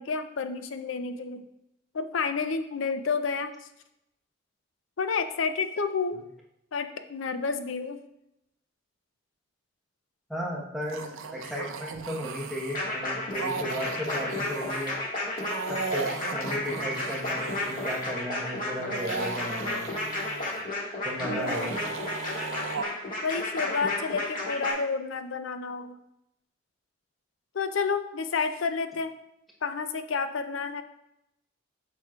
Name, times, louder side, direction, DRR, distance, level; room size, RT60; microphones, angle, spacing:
voice 1, 0.0-1.4 1.9-3.5 5.0-6.2 6.7-8.0 21.2-21.8 23.2-26.0 27.5-29.1 29.6-30.8, left 5 dB, 75° left, 9 dB, 0.5 m, -30 dB
voice 2, 10.3-15.0 15.7-19.9 21.0-21.8, equal, ahead, -4 dB, 1.1 m, -35 dB
sound 1, 10.8-12.8 13.3-14.9 15.4-18.1 18.8-20.7 21.2-22.8, right 4 dB, 80° right, 0.6 m, -36 dB
sound 2, 12.7-24.7, left 2 dB, 40° left, 1.7 m, -32 dB
7.9 x 5.9 x 2.4 m, 0.83 s
head